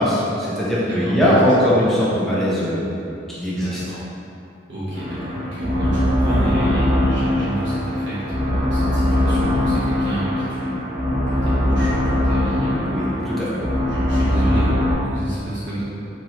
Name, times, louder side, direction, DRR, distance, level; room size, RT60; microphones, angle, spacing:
voice 1, 0.0-2.9 3.3-3.8 12.9-13.5, equal, ahead, -9 dB, 0.6 m, -20 dB
voice 2, 0.9-1.5 3.5-4.0 4.7-10.9 11.3-13.0 13.4-15.8, right 1 dB, 70° right, -10 dB, 0.9 m, -29 dB
sound 1, 4.9-14.9, left 1 dB, 50° right, 1.2 m, -21 dB
4.1 x 2.9 x 3.2 m, 2.8 s
head